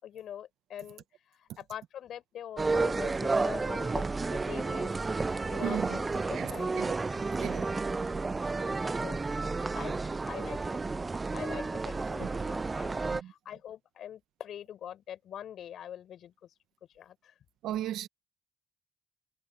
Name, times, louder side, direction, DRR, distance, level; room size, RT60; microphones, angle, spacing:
voice 1, 0.0-1.0 1.6-4.9 5.5-6.8 9.0-9.2 9.7-10.0 10.3-11.0 11.3-16.3 16.9-17.1, left 10 dB, 70° left, 6.7 m, -44 dB
sound 1, 2.6-13.2, right 3 dB, 25° right, 0.3 m, -31 dB
voice 2, 5.6-6.0 6.3-7.0 7.4-7.7 12.2-12.3 13.1-13.3 17.6-18.1, right 12 dB, 85° right, 1.0 m, -36 dB
cardioid pair, 90°, 0 cm